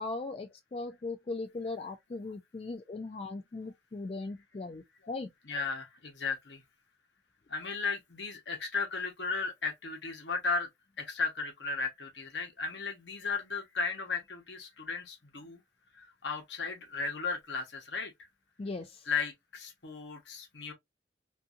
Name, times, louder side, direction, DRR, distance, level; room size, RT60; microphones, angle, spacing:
voice 1, 0.0-5.3 18.6-19.0, left 3 dB, 35° left, 0.3 m, -39 dB
voice 2, 5.4-6.6 7.5-10.7 11.0-15.6 15.9-18.3 19.0-20.7, left 4 dB, 75° left, 1.0 m, -35 dB
2.6 x 2.6 x 2.4 m
head